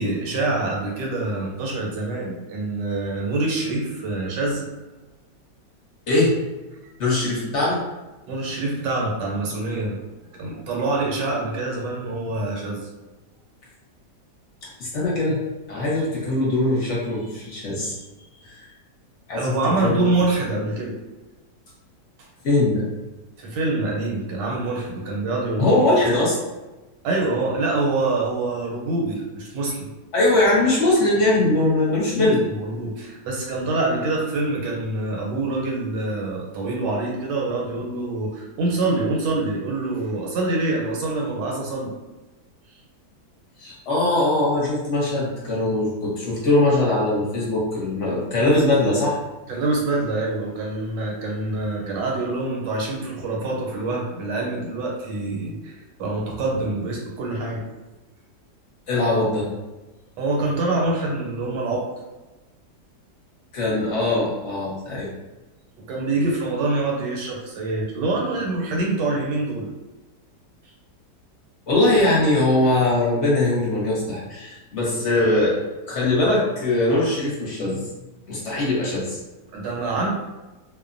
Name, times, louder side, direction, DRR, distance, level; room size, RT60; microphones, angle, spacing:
voice 1, 0.0-4.7 8.3-10.0 10.3-12.9 19.3-20.9 23.4-25.8 27.0-29.9 32.2-41.9 49.5-57.6 60.2-61.9 65.9-69.7 79.5-80.1, right 2 dB, 90° right, -2 dB, 1.3 m, -25 dB
voice 2, 7.0-7.8 14.8-15.4 15.7-17.9 18.4-18.7 19.3-19.5 19.8-20.2 22.4-22.8 25.6-26.4 30.1-32.4 43.6-49.2 58.9-59.5 63.5-65.1 71.7-75.5 75.9-77.8 78.3-79.2, left 2 dB, 50° left, -5 dB, 1.0 m, -21 dB
2.9 x 2.1 x 2.5 m, 1.1 s
omnidirectional pair, 1.8 m